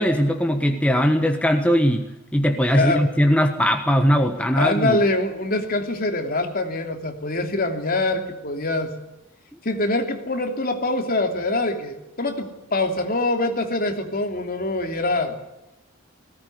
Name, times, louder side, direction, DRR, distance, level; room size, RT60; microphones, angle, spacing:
voice 1, 0.0-5.0, equal, 5° left, 4 dB, 1.4 m, -20 dB
voice 2, 2.7-3.0 4.6-8.9 9.6-15.3, left 2 dB, 45° left, 4 dB, 3.0 m, -24 dB
19.5 x 17.5 x 9.6 m, 0.93 s
head